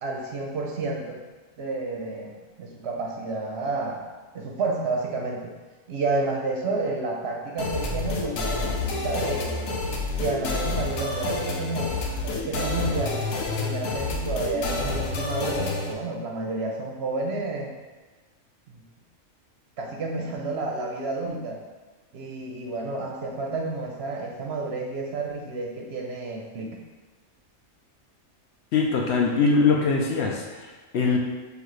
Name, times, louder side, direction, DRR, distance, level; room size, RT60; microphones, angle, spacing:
voice 1, 0.0-1.2 1.6-4.0 4.3-5.5 5.9-9.7 10.2-13.2 13.6-17.7 18.7-18.8 19.8-21.6 22.1-26.8, right 3 dB, 60° right, 0 dB, 0.8 m, -30 dB
sound 1, 7.6-15.9, left 3 dB, 80° left, 1.1 m, -29 dB
voice 2, 28.7-31.2, left 4 dB, 65° left, 0 dB, 0.8 m, -22 dB
6.7 x 2.5 x 3.1 m, 1.3 s
omnidirectional pair, 1.4 m